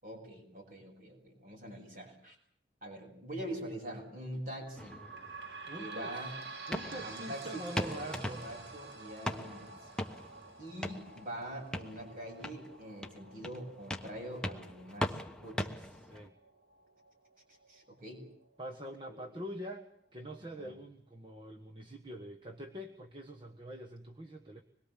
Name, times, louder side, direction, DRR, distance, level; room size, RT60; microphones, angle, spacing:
voice 1, 0.0-2.4 2.8-5.0 5.8-6.3 6.9-9.7 10.6-15.9 17.7-18.2 19.1-19.2 20.6-20.7, right 1 dB, 50° right, 0 dB, 7.7 m, -44 dB
sound 1, 4.7-17.8 18.4-18.5 18.8-18.9 19.7-19.8, right 4 dB, 75° right, 2.8 m, -49 dB
sound 2, 4.8-16.3, left 1 dB, 5° left, 1.1 m, -41 dB
voice 2, 5.7-6.2 6.7-8.4 16.0-16.3 18.6-24.6, equal, 30° right, 3 dB, 1.5 m, -45 dB
25.5 x 22.0 x 7.5 m, 0.64 s
head